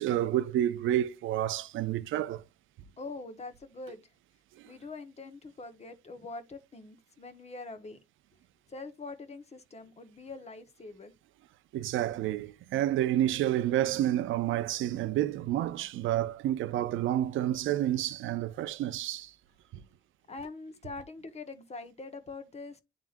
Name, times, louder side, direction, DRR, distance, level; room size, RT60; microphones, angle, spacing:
voice 1, 0.0-2.4 11.7-19.3, right 12 dB, 80° right, 0.5 m, -29 dB
voice 2, 3.0-4.0 4.6-8.0 8.7-11.1 20.3-22.8, left 3 dB, 35° left, 1.2 m, -44 dB
10.5 x 3.7 x 2.5 m
cardioid pair, 90°, 20 cm